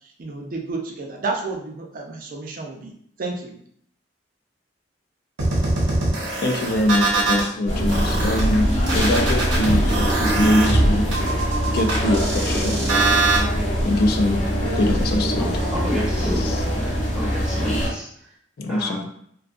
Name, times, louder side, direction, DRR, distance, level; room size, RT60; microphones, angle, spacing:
voice 1, 0.2-2.9 3.2-3.5, right 3 dB, 50° right, 1 dB, 0.4 m, -30 dB
sound 1, 5.4-7.5 7.9-13.4, right 2 dB, 90° right, 0.8 m, -22 dB
voice 2, 6.4-11.1 11.7-12.8 13.8-14.4 14.8-15.5 16.4-16.6 18.6-19.0, left 1 dB, 55° left, 4 dB, 0.4 m, -23 dB
sound 2, 7.7-17.9, equal, 40° left, 0.7 m, -23 dB
voice 3, 15.8-16.5 16.7-18.1 18.7-19.1, equal, 5° right, -5 dB, 0.6 m, -30 dB
2.6 x 2.3 x 2.4 m, 0.66 s
head